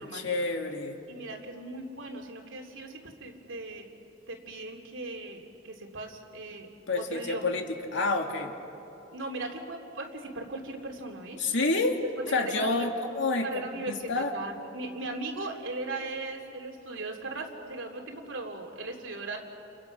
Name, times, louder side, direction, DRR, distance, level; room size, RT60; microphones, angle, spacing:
voice 1, 0.0-1.0 6.9-8.5 11.4-11.9 12.3-14.3, left 3 dB, 70° left, 3 dB, 2.3 m, -29 dB
voice 2, 1.1-3.9 4.3-6.7 6.9-7.5 9.1-11.4 12.2-12.9 13.4-19.4, right 2 dB, 75° right, 1 dB, 3.3 m, -38 dB
30.0 x 29.5 x 6.1 m, 2.9 s
head